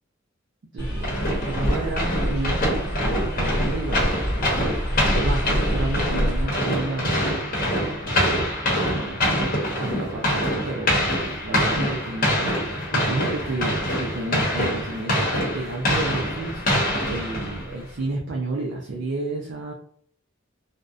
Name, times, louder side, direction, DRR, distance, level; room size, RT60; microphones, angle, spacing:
voice 1, 0.7-7.2 8.8-11.0 11.4-19.7, right 2 dB, 60° right, -1 dB, 0.4 m, -32 dB
sound 1, 0.8-6.5, equal, 10° left, 1.0 m, -27 dB
sound 2, 1.0-17.8, equal, 45° left, 0.8 m, -25 dB
2.6 x 2.1 x 2.3 m, 0.63 s
head